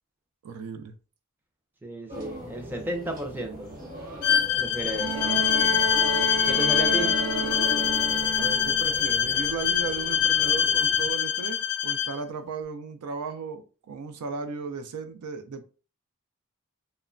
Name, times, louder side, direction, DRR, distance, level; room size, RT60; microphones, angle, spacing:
voice 1, 0.4-1.0 5.2-5.9 8.3-15.6, right 5 dB, 85° right, 0.4 m, -36 dB
voice 2, 1.8-3.7 4.6-5.3 6.4-7.1, right 1 dB, 10° right, 0.4 m, -33 dB
sound 1, 2.1-11.1, right 1 dB, 40° right, 1.0 m, -38 dB
Bowed string instrument, 4.2-12.1, left 9 dB, 90° left, 0.4 m, -24 dB
Bowed string instrument 2, 4.9-9.0 10.2-10.3, right 5 dB, 65° right, 0.7 m, -32 dB
2.9 x 2.1 x 2.4 m
head